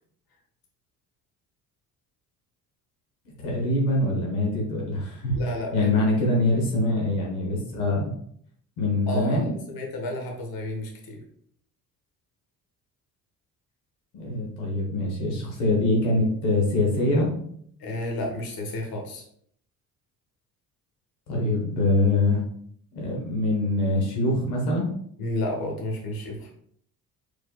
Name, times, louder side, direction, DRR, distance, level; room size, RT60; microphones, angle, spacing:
voice 1, 3.4-5.4 5.7-8.1 8.8-9.5 14.1-17.4 21.3-22.4 22.9-24.9, left 2 dB, 75° left, -2 dB, 1.3 m, -24 dB
voice 2, 5.3-5.9 9.1-11.2 17.8-19.3 25.2-26.5, left 1 dB, 50° left, 1 dB, 1.3 m, -31 dB
4.8 x 4.4 x 2.2 m, 0.64 s
hypercardioid pair, 50°, 45 cm